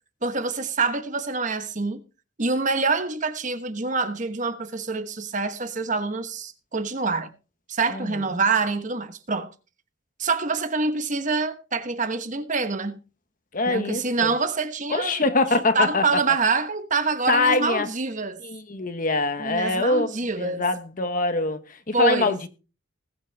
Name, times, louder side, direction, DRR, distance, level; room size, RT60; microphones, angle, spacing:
voice 1, 0.2-2.0 2.4-7.3 7.7-9.5 10.2-13.0 13.7-15.3 15.7-18.4 19.4-20.6 21.9-22.3, right 4 dB, 40° right, 1.2 m, -26 dB
voice 2, 7.9-8.2 13.5-14.3 14.9-16.0 17.3-17.9 18.4-20.1 20.4-22.5, left 2 dB, 45° left, 1.1 m, -24 dB
20.0 x 7.5 x 3.4 m
head